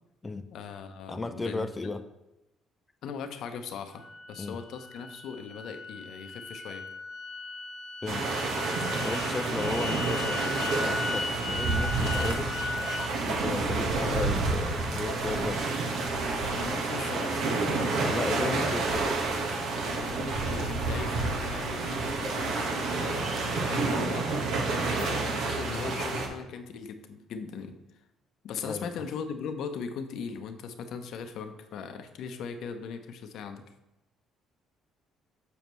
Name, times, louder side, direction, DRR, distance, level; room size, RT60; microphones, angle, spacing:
voice 1, 0.5-1.9 3.0-4.0 4.3-6.8 16.5-18.7 19.9-24.3 25.0-27.7 28.4-33.6, left 6 dB, 70° left, 7 dB, 0.8 m, -39 dB
voice 2, 1.1-2.0 4.4-4.6 8.0-8.2 9.0-12.6 13.3-15.9 18.1-19.1 24.9-25.1 28.6-28.9, left 3 dB, 20° left, 7 dB, 0.5 m, -35 dB
sound 1, 4.0-13.1, left 3 dB, 90° left, 1.0 m, -37 dB
sound 2, 8.1-26.3, right 3 dB, 70° right, 1.3 m, -29 dB
7.0 x 6.9 x 3.1 m, 0.95 s
supercardioid pair, 80°, 0 cm